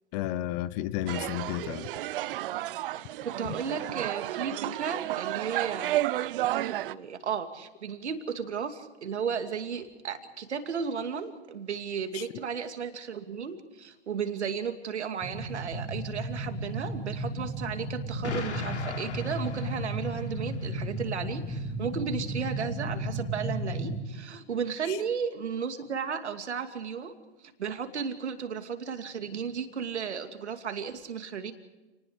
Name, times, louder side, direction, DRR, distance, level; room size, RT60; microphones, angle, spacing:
voice 1, 0.1-1.9 3.4-3.5 12.1-12.2 24.9-25.0, left 13 dB, 35° left, 17 dB, 1.0 m, -32 dB
sound 1, 1.1-6.9, right 15 dB, 50° right, 0.8 m, -32 dB
voice 2, 3.2-6.0 6.5-27.1 27.6-31.5, right 6 dB, 80° right, 7 dB, 2.6 m, -34 dB
sound 2, 15.2-24.0, right 1 dB, 10° left, 2.9 m, -34 dB
Explosion, 18.2-20.4, left 4 dB, 80° left, 3.7 m, -38 dB
29.0 x 19.5 x 5.0 m, 1.1 s
hypercardioid pair, 120°, 34 cm